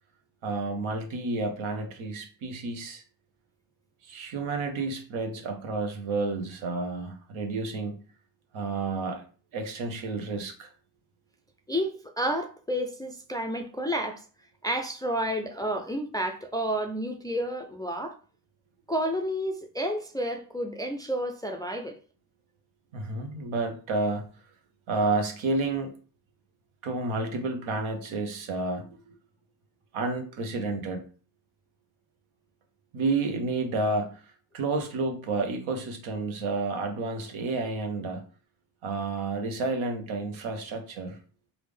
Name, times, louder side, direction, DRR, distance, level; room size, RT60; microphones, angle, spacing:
voice 1, 0.4-3.0 4.0-8.0 8.5-9.2 9.5-10.7 22.9-24.3 24.9-25.9 26.8-29.1 29.9-31.0 32.9-34.2 34.5-38.2 38.8-41.2, right 3 dB, 70° right, 0.9 m, -30 dB
voice 2, 11.7-14.2 14.6-18.2 18.9-22.0, equal, 10° left, 0.3 m, -30 dB
3.3 x 2.6 x 3.2 m
supercardioid pair, 55°, 49 cm